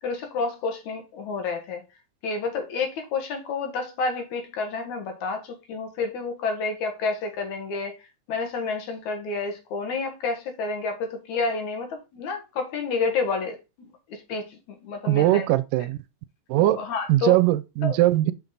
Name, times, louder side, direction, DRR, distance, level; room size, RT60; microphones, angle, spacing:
voice 1, 0.0-1.8 2.2-7.9 8.3-15.4 16.6-17.4 17.8-18.0, left 4 dB, 65° left, 2.5 m, -29 dB
voice 2, 15.1-16.0 16.5-16.8 17.1-18.3, right 16 dB, 85° right, 2.1 m, -20 dB
6.0 x 5.7 x 3.9 m
omnidirectional pair, 3.8 m